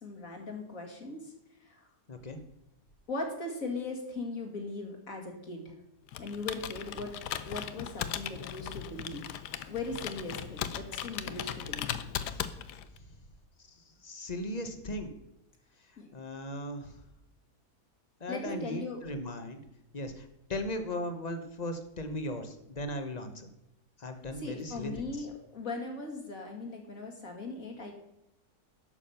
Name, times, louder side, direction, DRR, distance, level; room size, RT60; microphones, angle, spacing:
voice 1, 0.0-1.3 1.6-1.9 3.1-5.7 6.2-7.1 7.4-9.4 9.7-11.9 16.0-16.1 18.3-19.0 24.3-27.9, left 3 dB, 55° left, 1 dB, 2.6 m, -39 dB
Computer keyboard, 6.1-13.0, left 10 dB, 85° left, 1.3 m, -38 dB
voice 2, 13.7-15.1 16.1-16.9 18.2-19.6 19.9-23.5 24.0-25.3, left 1 dB, 30° left, 7 dB, 1.1 m, -37 dB
11.5 x 7.3 x 5.7 m, 0.86 s
omnidirectional pair, 1.7 m